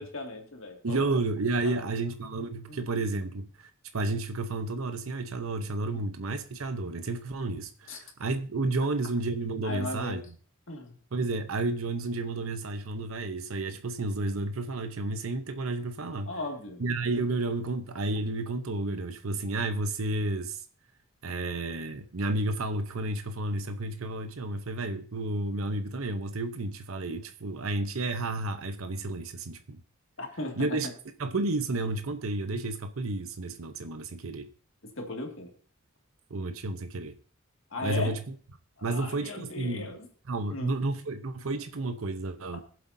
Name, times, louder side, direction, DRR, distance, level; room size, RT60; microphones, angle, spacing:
voice 1, 0.0-1.1 1.6-1.8 2.7-2.8 5.9-6.0 7.9-8.0 9.6-10.2 10.7-10.9 16.3-16.9 30.2-30.8 35.0-35.5 37.7-38.1 38.8-40.1 40.5-40.8 42.5-42.6, left 2 dB, 65° left, 2.1 m, -37 dB
voice 2, 0.8-10.2 11.1-16.3 16.8-20.6 21.2-29.8 30.6-30.9 31.2-34.5 36.3-37.1 37.8-38.2 38.8-39.9 40.3-42.6, right 2 dB, 85° right, 0.8 m, -31 dB
22.0 x 7.7 x 2.7 m
head